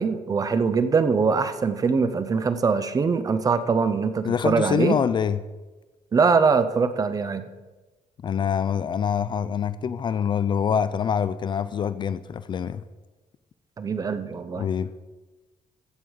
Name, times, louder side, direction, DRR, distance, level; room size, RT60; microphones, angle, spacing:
voice 1, 0.0-5.0 6.1-7.4 13.8-14.6, right 5 dB, 25° right, 11 dB, 0.7 m, -22 dB
voice 2, 4.2-5.4 8.2-12.8 14.6-14.9, left 7 dB, 35° left, 15 dB, 0.4 m, -25 dB
15.5 x 5.4 x 6.3 m, 1.2 s
cardioid pair, 165°, 13 cm